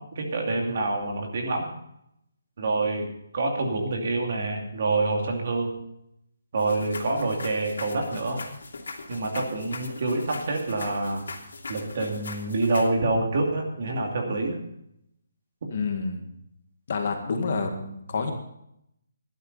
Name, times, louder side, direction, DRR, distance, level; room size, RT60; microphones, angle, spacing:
voice 1, 0.0-1.7 2.6-3.1 3.3-5.7 6.5-8.4 9.1-11.2 11.7-14.6, right 2 dB, 40° right, 1 dB, 2.5 m, -27 dB
sound 1, 6.6-12.9, left 3 dB, 65° left, 2.9 m, -40 dB
voice 2, 15.7-16.3 16.9-18.3, left 4 dB, 35° left, 3 dB, 1.8 m, -28 dB
16.5 x 11.5 x 4.1 m, 0.77 s
hypercardioid pair, 175°, 0 cm